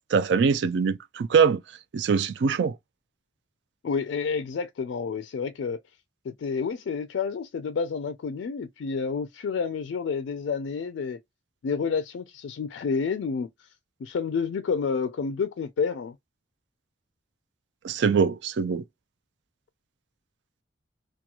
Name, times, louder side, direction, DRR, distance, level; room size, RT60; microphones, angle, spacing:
voice 1, 0.1-1.6 1.9-2.8 17.8-18.8, right 6 dB, 70° right, 0.4 m, -23 dB
voice 2, 3.8-5.8 6.2-11.2 11.6-13.7 14.0-16.2, left 5 dB, 85° left, 0.4 m, -29 dB
2.9 x 2.3 x 2.3 m
head